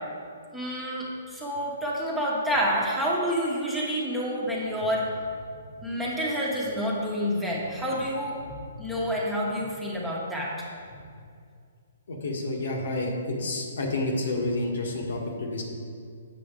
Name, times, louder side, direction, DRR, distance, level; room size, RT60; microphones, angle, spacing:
voice 1, 0.5-5.0 5.8-8.4 8.8-10.5, equal, 5° right, -5 dB, 1.2 m, -28 dB
voice 2, 12.1-15.6, left 2 dB, 75° left, 0 dB, 1.4 m, -30 dB
7.6 x 6.0 x 3.8 m, 2.2 s
hypercardioid pair, 145°, 0 cm